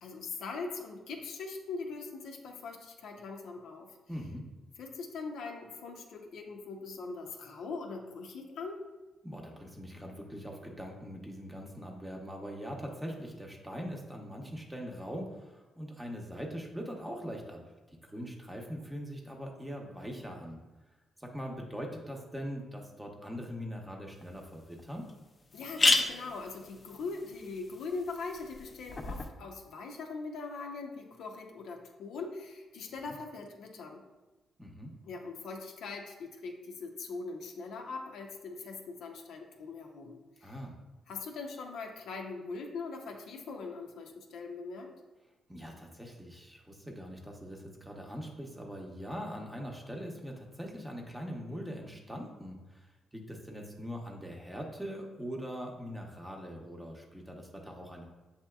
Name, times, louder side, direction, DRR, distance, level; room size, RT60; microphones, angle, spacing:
voice 1, 0.0-4.0 4.8-8.8 25.5-34.0 35.0-40.5 41.1-44.9, left 4 dB, 80° left, 2 dB, 0.5 m, -41 dB
voice 2, 4.1-4.4 9.2-17.6 18.0-20.6 21.2-25.1 33.1-33.2 34.6-34.9 40.4-40.7 45.5-58.1, equal, 10° right, 0 dB, 0.7 m, -42 dB
sound 1, 24.2-24.3 24.8-24.9 25.1-25.2 25.5-29.3, left 2 dB, 30° left, 0.4 m, -32 dB
7.3 x 2.8 x 2.3 m, 1.1 s
cardioid pair, 105°, 0 cm